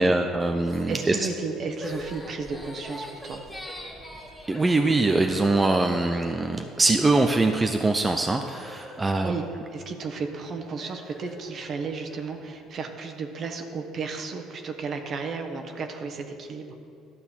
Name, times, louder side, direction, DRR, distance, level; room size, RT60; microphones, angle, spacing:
voice 1, 0.0-1.2 4.5-9.3, right 2 dB, 20° right, 4 dB, 0.6 m, -23 dB
sound 1, 0.6-12.7, left 1 dB, 5° left, 1.5 m, -45 dB
voice 2, 0.9-3.5 9.2-9.4 9.7-16.7, right 4 dB, 50° right, 5 dB, 1.1 m, -33 dB
12.0 x 4.2 x 7.2 m, 2.5 s
supercardioid pair, 75°, 0 cm